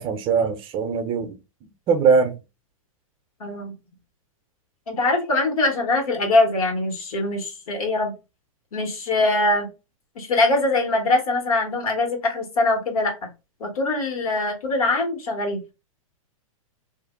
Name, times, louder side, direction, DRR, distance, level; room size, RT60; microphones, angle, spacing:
voice 1, 0.0-2.4, right 5 dB, 30° right, 0.6 m, -22 dB
voice 2, 3.4-3.7 4.9-8.1 8.7-9.7 10.2-13.1 13.6-15.7, left 2 dB, 80° left, 1.3 m, -22 dB
2.5 x 2.1 x 3.5 m
hypercardioid pair, 130°, 18 cm